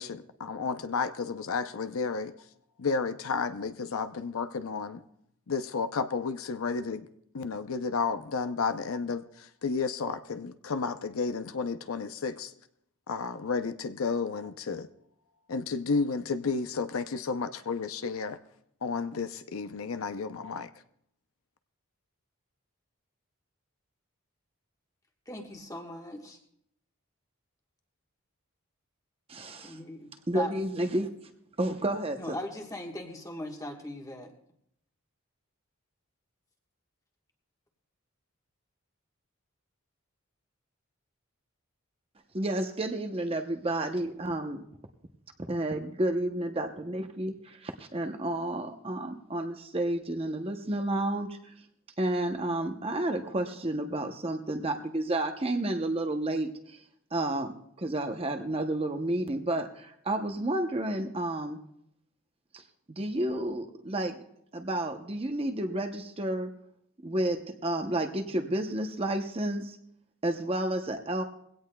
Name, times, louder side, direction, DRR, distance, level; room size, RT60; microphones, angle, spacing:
voice 1, 0.0-2.3 2.8-5.0 5.5-7.1 7.3-12.5 13.1-14.9 15.5-18.4 18.8-20.7, left 4 dB, 70° left, 10 dB, 0.6 m, -32 dB
voice 2, 25.3-26.4 29.6-30.5 32.2-34.3, left 1 dB, 15° left, 2 dB, 1.3 m, -39 dB
voice 3, 29.3-29.8 30.3-31.1 31.6-32.4 42.3-44.6 45.5-51.5 52.0-56.8 57.1-61.6 62.5-62.6 62.9-64.2 64.5-66.5 67.0-69.8 70.2-71.2, right 1 dB, 25° right, 5 dB, 0.7 m, -31 dB
21.5 x 16.5 x 2.3 m, 0.74 s
head